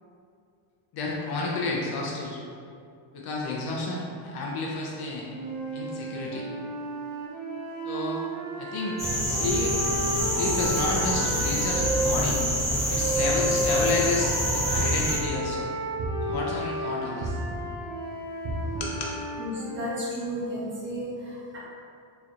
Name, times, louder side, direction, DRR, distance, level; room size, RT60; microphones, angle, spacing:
voice 1, 0.9-2.4 3.1-5.3 5.7-6.5 7.8-8.2 8.6-9.0 9.2-9.7 10.3-12.4 12.9-15.7 16.2-17.4 18.7-19.2, left 2 dB, 55° left, -3 dB, 0.7 m, -31 dB
sound 1, 5.2-12.2 12.9-20.1, equal, 80° right, 0.9 m, -32 dB
sound 2, 9.0-15.2, equal, 15° left, 1.2 m, -26 dB
sound 3, 14.7-15.4 16.0-16.6 17.2-17.8 18.4-19.1, right 1 dB, 45° right, 0.7 m, -33 dB
voice 2, 19.4-21.6, equal, 25° right, -7 dB, 1.0 m, -33 dB
4.0 x 3.2 x 2.5 m, 2.4 s
cardioid pair, 125°, 47 cm